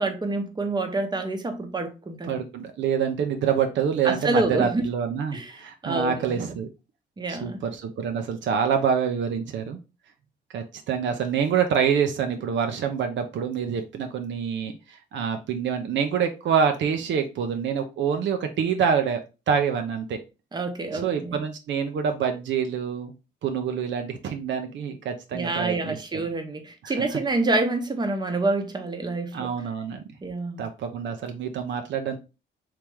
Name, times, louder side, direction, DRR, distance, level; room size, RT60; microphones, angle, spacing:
voice 1, 0.0-2.4 4.0-4.8 5.3-6.5 7.2-7.6 20.5-21.4 25.3-29.5 30.2-30.6, right 2 dB, 20° right, 0.8 m, -27 dB
voice 2, 2.3-6.7 7.3-9.8 10.5-19.2 19.5-20.2 20.9-23.1 23.4-25.9 26.8-26.9 29.3-30.0 30.6-32.2, right 7 dB, 65° right, 0.6 m, -26 dB
3.1 x 2.9 x 3.4 m
cardioid pair, 90°, 20 cm